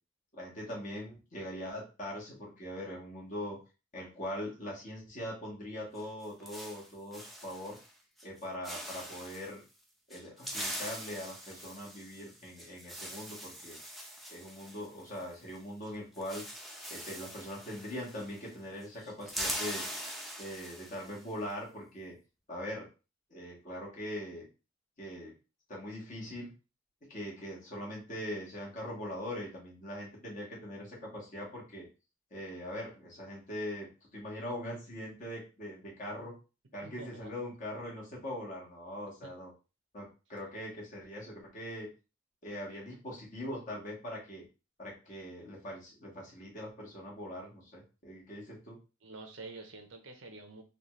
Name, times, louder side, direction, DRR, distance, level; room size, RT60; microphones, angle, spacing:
voice 1, 0.3-3.6 3.9-7.8 8.2-9.6 10.1-13.8 14.3-16.4 16.9-19.8 20.4-22.1 22.5-22.9 23.3-24.5 25.0-25.3 25.7-26.5 27.1-31.8 32.3-36.3 36.7-39.5 39.9-41.9 42.4-44.4 44.8-48.8, equal, 40° left, -4 dB, 1.5 m, -41 dB
sound 1, 5.9-7.9 8.2-8.4 8.6-9.5 10.1-15.6 15.8-15.9 16.1-18.5 18.8-21.2, equal, ahead, 0.7 m, -42 dB
voice 2, 36.8-37.3 39.2-39.3 49.0-50.6, right 3 dB, 75° right, 6 dB, 0.7 m, -47 dB
4.0 x 2.4 x 3.0 m, 0.31 s
head